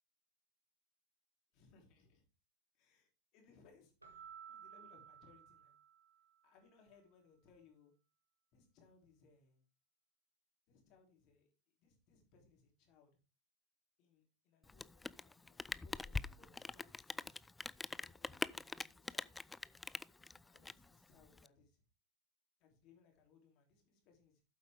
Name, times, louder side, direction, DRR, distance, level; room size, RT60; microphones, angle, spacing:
voice 1, 1.5-2.2 2.7-5.7 6.4-7.9 8.5-9.6 10.7-11.5 11.8-13.1 14.0-17.3 18.0-19.3 20.2-21.8 22.6-24.4, left 5 dB, 40° left, 2 dB, 3.5 m, -68 dB
Keyboard (musical), 4.0-6.4, right 8 dB, 80° right, 1.8 m, -56 dB
Rain, 14.6-21.5, left 3 dB, 10° left, 0.3 m, -44 dB
8.9 x 7.9 x 3.5 m, 0.32 s
figure-of-eight pair, 90°, 0 cm